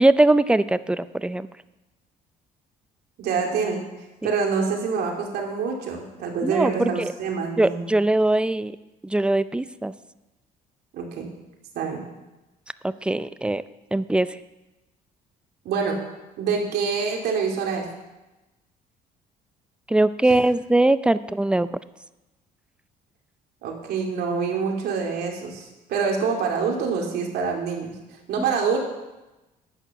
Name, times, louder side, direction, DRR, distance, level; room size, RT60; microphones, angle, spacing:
voice 1, 0.0-1.5 4.2-4.3 6.4-7.1 7.6-8.8 9.0-9.9 12.8-13.6 13.9-14.4 19.9-21.7, right 2 dB, 5° right, 15 dB, 0.4 m, -21 dB
voice 2, 3.2-3.8 4.2-7.8 10.9-11.3 11.7-12.1 15.6-16.0 16.4-17.8 23.6-27.9 28.3-28.8, right 5 dB, 70° right, 1 dB, 2.7 m, -26 dB
10.5 x 9.2 x 5.9 m, 1.0 s
cardioid pair, 110°, 17 cm